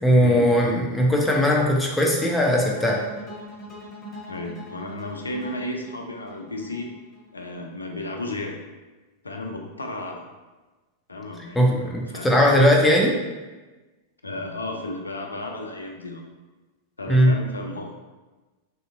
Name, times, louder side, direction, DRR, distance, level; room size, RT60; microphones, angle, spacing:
voice 1, 0.0-3.0 11.6-13.2 17.1-17.3, equal, 5° left, -2 dB, 0.5 m, -19 dB
sound 1, 2.4-7.5, left 1 dB, 25° left, 0.9 m, -42 dB
voice 2, 4.3-6.9 7.3-8.6 9.2-10.3 11.1-12.4 14.2-16.2 17.0-18.0, left 2 dB, 80° left, 2 dB, 0.4 m, -33 dB
3.5 x 2.6 x 2.4 m, 1.2 s
figure-of-eight pair, 90°, 0 cm